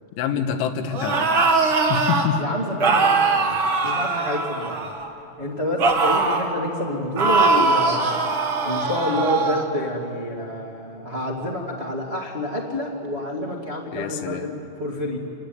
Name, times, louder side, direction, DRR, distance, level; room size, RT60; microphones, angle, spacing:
voice 1, 0.2-1.3 1.9-2.4 3.8-3.9 13.9-14.5, left 7 dB, 80° left, 5 dB, 3.9 m, -26 dB
sound 1, 0.9-2.3 2.8-5.1 5.8-6.5 7.2-9.6, right 3 dB, 65° right, 1.2 m, -21 dB
voice 2, 2.4-4.8 5.4-8.3 8.6-15.2, left 1 dB, 80° right, -2 dB, 0.5 m, -28 dB
27.5 x 19.5 x 9.6 m, 2.8 s
omnidirectional pair, 5.5 m